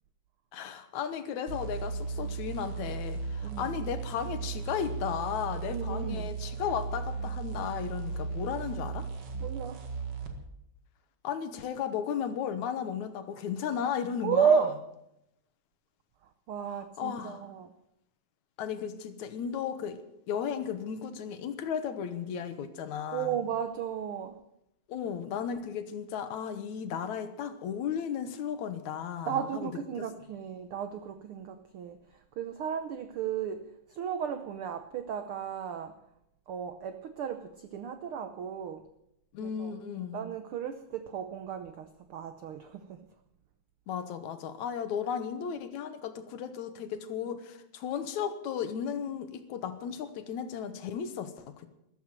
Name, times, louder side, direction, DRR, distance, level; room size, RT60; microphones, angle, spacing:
voice 1, 0.5-9.1 11.2-14.7 16.7-17.4 18.6-20.0 20.3-23.3 24.9-29.7 30.0-30.1 39.3-40.2 43.9-51.7, left 8 dB, 70° left, 10 dB, 2.4 m, -35 dB
sound 1, 1.5-10.4, right 5 dB, 50° right, 2.6 m, -36 dB
voice 2, 5.7-6.3 9.4-9.8 14.2-14.8 16.5-17.7 23.1-24.4 29.2-36.0 36.5-38.9 39.4-39.7 40.0-43.0, right 7 dB, 90° right, 9 dB, 1.2 m, -33 dB
14.0 x 12.5 x 7.5 m, 0.81 s
omnidirectional pair, 3.6 m